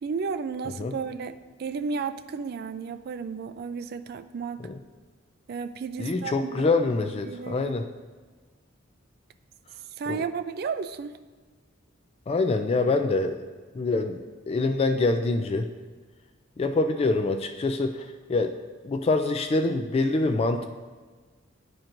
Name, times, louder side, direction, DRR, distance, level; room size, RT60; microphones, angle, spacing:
voice 1, 0.0-4.7 5.5-7.8 10.0-11.2, right 5 dB, 50° right, 10 dB, 0.3 m, -33 dB
voice 2, 6.0-7.9 10.1-10.2 12.3-13.4 13.7-14.2 14.5-15.7 16.6-18.6 18.8-20.7, left 3 dB, 30° left, 6 dB, 0.3 m, -25 dB
11.0 x 4.4 x 2.5 m, 1.4 s
head